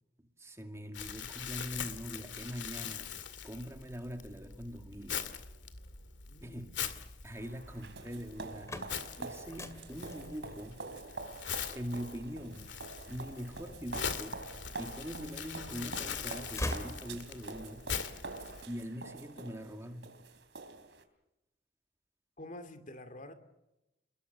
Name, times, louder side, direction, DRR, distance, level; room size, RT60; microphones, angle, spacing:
voice 1, 0.2-3.1 3.4-5.3 6.4-10.9 11.7-12.8 13.1-14.4 14.8-17.9 18.7-20.1, equal, 15° right, 5 dB, 2.3 m, -43 dB
Crumpling crinkling, 0.9-18.6, left 7 dB, 90° left, 2.2 m, -42 dB
voice 2, 6.3-6.7 22.4-23.3, left 1 dB, 45° left, 7 dB, 2.7 m, -47 dB
sound 1, 7.3-21.0, right 3 dB, 80° right, 3.3 m, -46 dB
sound 2, 8.5-14.3 14.9-15.7 16.0-17.6, left 1 dB, 15° left, 2.2 m, -43 dB
29.0 x 21.5 x 7.0 m, 0.93 s
head